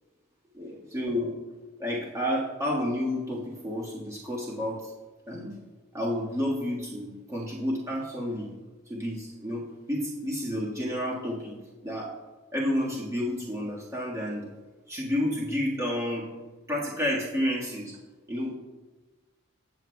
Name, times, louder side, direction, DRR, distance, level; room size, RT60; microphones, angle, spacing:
voice 1, 0.5-1.3 1.8-4.9 5.3-5.6 5.9-8.5 8.9-12.1 12.5-14.5 14.9-16.3 16.7-18.0 18.3-18.6, left 1 dB, 15° right, -5 dB, 1.6 m, -30 dB
19.0 x 7.1 x 2.3 m, 1.2 s
head